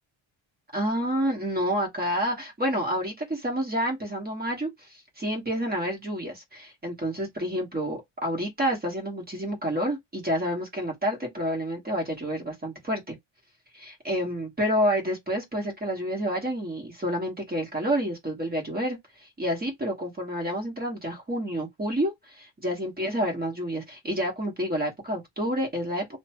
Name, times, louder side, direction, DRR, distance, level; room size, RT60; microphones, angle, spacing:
voice 1, 0.7-13.2 13.7-26.2, equal, 20° right, 1.2 m, -29 dB
2.8 x 2.2 x 2.8 m
cardioid pair, 130°, 49 cm